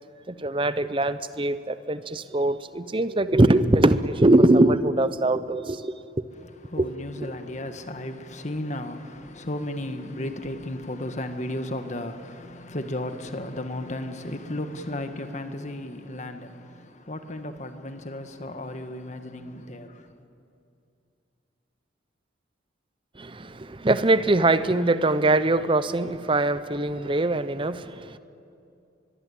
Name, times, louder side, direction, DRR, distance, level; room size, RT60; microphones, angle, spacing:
voice 1, 0.3-5.9 6.8-6.9 7.2-7.3 23.2-28.2, right 2 dB, 30° right, 0.7 m, -22 dB
voice 2, 6.4-20.1, left 1 dB, 40° left, 1.5 m, -34 dB
24.0 x 21.5 x 8.5 m
head